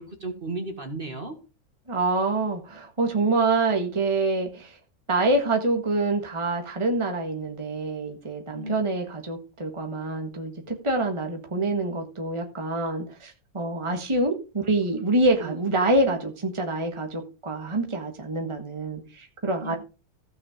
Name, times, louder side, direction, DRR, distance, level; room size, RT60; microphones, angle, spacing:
voice 1, 0.0-1.4 8.5-8.7 15.4-15.5 19.6-19.8, right 2 dB, 35° right, 5 dB, 1.9 m, -34 dB
voice 2, 1.9-4.8 5.1-19.8, right 2 dB, 20° right, 3 dB, 1.7 m, -26 dB
15.5 x 6.1 x 5.0 m, 0.33 s
omnidirectional pair, 1.6 m